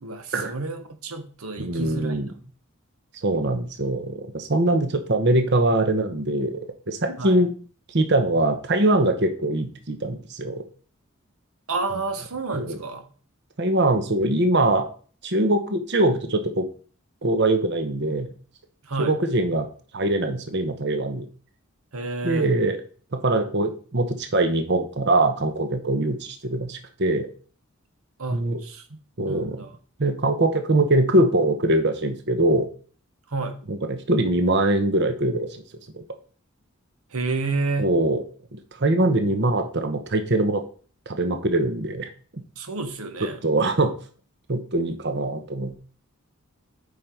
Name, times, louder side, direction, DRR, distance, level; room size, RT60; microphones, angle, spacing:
voice 1, 0.0-2.2 7.2-7.4 11.7-13.1 18.8-19.1 21.9-22.5 28.2-29.0 29.2-29.7 33.3-33.6 37.1-37.9 42.6-43.4, right 3 dB, 85° right, 8 dB, 1.1 m, -30 dB
voice 2, 1.6-2.3 3.2-6.6 6.9-7.5 7.9-10.6 12.5-12.8 13.6-14.9 15.2-16.7 17.2-18.3 19.0-19.7 19.9-21.3 22.2-22.8 23.1-27.3 28.3-28.6 29.2-29.6 30.0-32.7 33.7-35.6 35.9-36.0 37.8-38.2 38.5-40.6 41.1-42.4 43.4-43.9 44.5-45.7, right 2 dB, 55° right, 7 dB, 1.0 m, -22 dB
8.5 x 5.6 x 4.5 m, 0.41 s
head